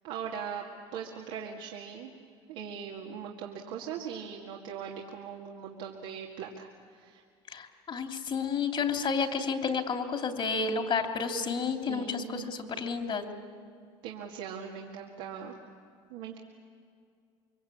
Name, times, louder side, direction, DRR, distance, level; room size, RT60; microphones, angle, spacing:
voice 1, 0.0-0.7 0.9-2.1 2.5-7.2 11.9-12.5 14.0-15.6 16.1-16.4, right 7 dB, 80° right, -1 dB, 2.2 m, -40 dB
voice 2, 7.5-13.2, left 5 dB, 45° left, 4 dB, 3.1 m, -31 dB
26.0 x 23.0 x 8.7 m, 2.3 s
supercardioid pair, 90°, 13 cm